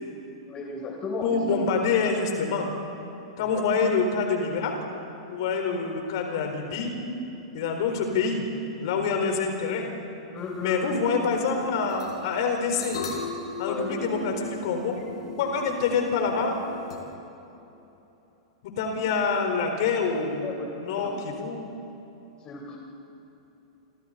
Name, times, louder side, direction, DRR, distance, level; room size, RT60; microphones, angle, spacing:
voice 1, 0.5-1.4 3.4-3.6 10.3-11.0 13.6-13.9 20.4-20.7 21.0-21.1 22.4-22.8, left 3 dB, 30° left, 0 dB, 3.7 m, -35 dB
voice 2, 1.2-2.7 3.4-4.7 5.3-7.0 7.5-8.4 8.8-9.9 10.6-13.0 13.6-15.1 15.4-16.6 18.8-20.5 20.8-21.6, left 5 dB, 60° left, 3 dB, 4.4 m, -26 dB
sound 1, 10.4-17.0, left 5 dB, 75° left, 4.6 m, -39 dB
28.0 x 26.0 x 4.2 m, 3.0 s
hypercardioid pair, 105°, 3 cm